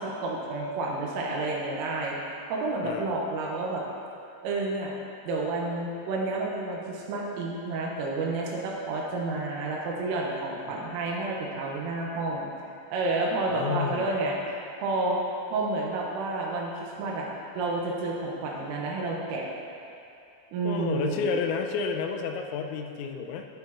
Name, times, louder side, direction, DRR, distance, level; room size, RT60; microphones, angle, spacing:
voice 1, 0.0-3.8 4.4-4.9 5.2-12.5 12.9-15.2 15.5-17.3 17.6-19.5 20.5-21.3, right 2 dB, 85° right, -2 dB, 3.6 m, -30 dB
voice 2, 2.8-3.2 10.7-10.8 13.5-14.2 20.6-23.5, left 5 dB, 85° left, 5 dB, 3.2 m, -31 dB
11.5 x 9.8 x 2.9 m, 2.7 s
omnidirectional pair, 5.9 m